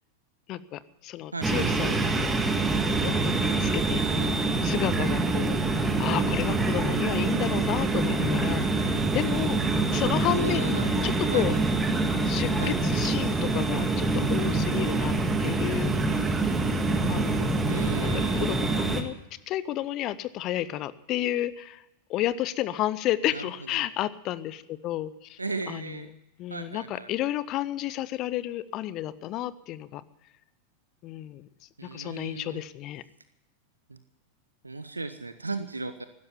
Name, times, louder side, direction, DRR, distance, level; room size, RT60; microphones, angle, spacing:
voice 1, 0.5-2.4 3.0-4.3 4.6-9.6 9.9-11.5 12.2-15.1 15.4-15.9 17.1-17.6 18.0-19.1 19.5-21.8 22.1-25.4 25.7-26.0 26.4-30.0 31.0-31.5 31.9-33.0, left 13 dB, 35° left, 17 dB, 0.7 m, -31 dB
voice 2, 1.3-1.6 6.1-6.3 10.3-11.4 12.6-12.7 17.7-18.4 23.3-23.8 25.4-26.1 26.5-27.1 31.8-32.6 33.9-34.0 34.6-36.0, right 3 dB, 80° right, 11 dB, 0.8 m, -36 dB
sound 1, 1.4-19.0, right 3 dB, 15° right, 1.8 m, -25 dB
16.0 x 12.0 x 7.2 m, 0.93 s
figure-of-eight pair, 90°, 0 cm